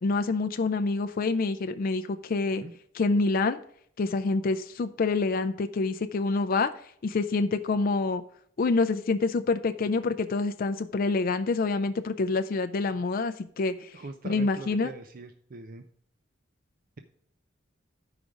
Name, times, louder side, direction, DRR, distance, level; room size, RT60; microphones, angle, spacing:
voice 1, 0.0-2.6 2.9-3.6 4.0-8.2 8.6-14.9, left 3 dB, 45° left, 9 dB, 0.4 m, -27 dB
voice 2, 13.9-15.8, right 3 dB, 45° right, 7 dB, 0.5 m, -42 dB
10.5 x 4.9 x 5.1 m, 0.65 s
head